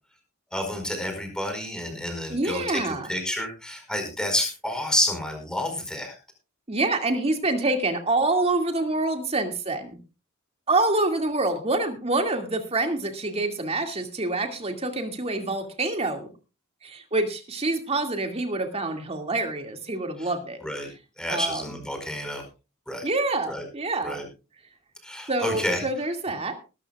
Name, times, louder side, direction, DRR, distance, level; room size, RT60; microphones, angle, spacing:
voice 1, 0.5-6.2 20.2-20.3 20.6-20.9 21.2-22.4 22.9-23.1 23.5-23.6 24.0-24.2 25.0-25.8, left 1 dB, 5° left, 4 dB, 4.7 m, -29 dB
voice 2, 2.3-3.1 6.7-10.0 10.7-16.3 16.8-20.6 21.3-21.8 23.0-24.2 25.3-26.6, right 2 dB, 30° right, 5 dB, 2.3 m, -26 dB
20.5 x 13.5 x 2.4 m, 0.31 s
head